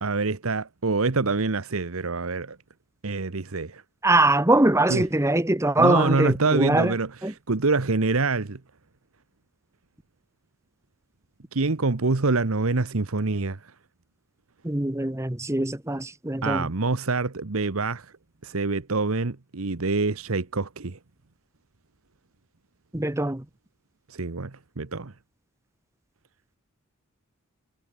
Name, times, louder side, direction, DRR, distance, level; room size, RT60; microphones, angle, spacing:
voice 1, 0.0-2.6 3.0-3.8 4.9-5.0 5.8-7.1 7.5-8.6 11.5-13.7 16.4-18.1 18.4-21.0 24.1-25.1, right 3 dB, 70° right, 1.1 m, -26 dB
voice 2, 4.0-6.9 7.2-7.3 14.6-16.7 22.9-23.4, right 2 dB, 15° right, 1.0 m, -22 dB
head